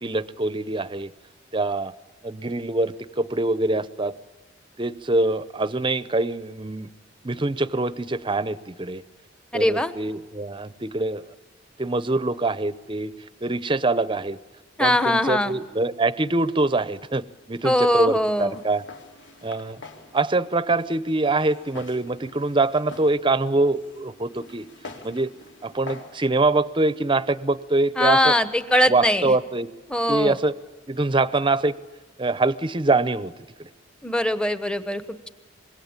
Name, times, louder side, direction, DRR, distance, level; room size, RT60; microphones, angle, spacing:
voice 1, 0.0-1.1 1.5-1.9 2.2-4.2 4.8-6.9 7.2-9.0 9.5-11.2 11.8-13.1 13.4-14.4 14.8-18.8 19.4-19.8 20.1-24.7 25.0-25.3 25.6-28.4 28.9-29.7 30.1-30.5 30.9-31.7 32.2-33.3 33.6-33.7, right 2 dB, 25° right, 16 dB, 0.8 m, -24 dB
voice 2, 9.5-9.9 14.8-15.6 17.6-18.5 28.0-29.3 29.9-30.4 34.0-35.3, left 1 dB, 5° left, 12 dB, 1.2 m, -21 dB
Walk footsteps, 18.4-26.2, left 3 dB, 70° left, 3.7 m, -45 dB
25.5 x 21.5 x 8.9 m, 1.3 s
head